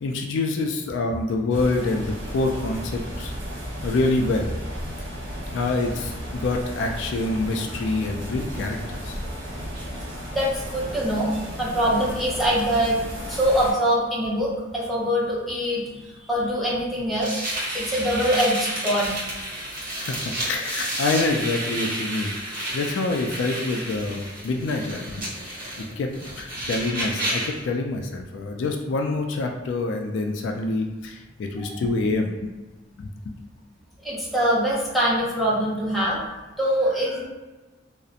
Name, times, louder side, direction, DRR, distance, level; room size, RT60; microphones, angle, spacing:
voice 1, 0.0-3.3 3.8-4.5 5.5-9.2 20.0-32.5 33.0-33.3, left 2 dB, 70° left, 3 dB, 0.3 m, -26 dB
sound 1, 1.5-13.7, equal, 90° right, 0.9 m, -34 dB
voice 2, 10.3-13.0 13.3-17.4 17.7-19.2 31.7-31.8 34.0-36.2 36.6-37.3, equal, ahead, -7 dB, 0.6 m, -23 dB
sound 2, 17.2-27.6, right 1 dB, 50° right, 1.0 m, -31 dB
2.7 x 2.0 x 2.4 m, 1.2 s
head